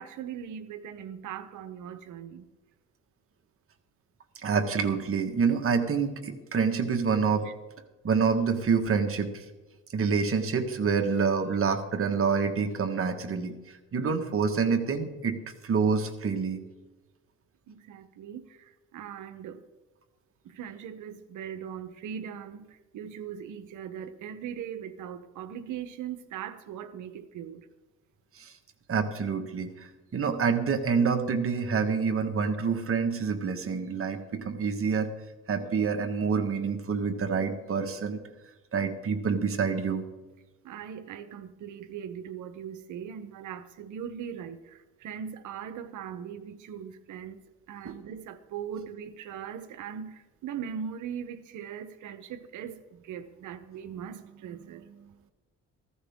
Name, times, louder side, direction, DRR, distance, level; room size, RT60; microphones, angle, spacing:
voice 1, 0.0-2.5 7.4-7.5 17.7-19.6 20.4-27.7 40.6-55.3, right 8 dB, 80° right, 11 dB, 1.0 m, -40 dB
voice 2, 4.4-7.5 8.0-9.4 9.9-15.4 15.6-16.6 28.3-28.5 28.9-35.1 35.5-38.2 38.7-40.0 47.8-47.9, right 5 dB, 45° right, 6 dB, 1.6 m, -27 dB
15.0 x 14.5 x 3.7 m, 1.1 s
cardioid pair, 90°, 30 cm